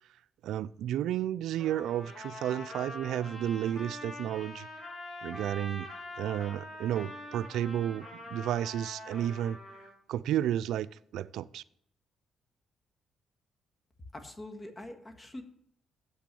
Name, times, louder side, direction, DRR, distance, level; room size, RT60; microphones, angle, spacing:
voice 1, 0.4-4.7 5.2-5.9 6.2-9.6 10.1-10.9 11.1-11.6, right 11 dB, 80° right, 0.4 m, -32 dB
Trumpet, 1.6-9.9, left 1 dB, 40° left, 5.3 m, -44 dB
voice 2, 14.1-15.4, left 1 dB, 25° left, 1.7 m, -44 dB
9.1 x 7.7 x 6.8 m
cardioid pair, 90°, 0 cm